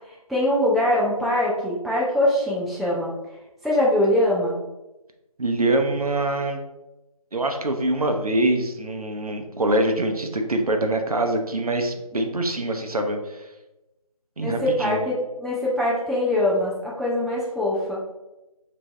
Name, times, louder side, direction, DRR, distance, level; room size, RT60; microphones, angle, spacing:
voice 1, 0.3-3.1 3.6-4.6 14.4-18.0, left 1 dB, ahead, -7 dB, 0.3 m, -22 dB
voice 2, 5.4-6.6 7.3-13.4 14.4-15.0, right 1 dB, 75° right, 4 dB, 0.6 m, -24 dB
3.1 x 2.6 x 3.3 m, 1.0 s
figure-of-eight pair, 180°, 19 cm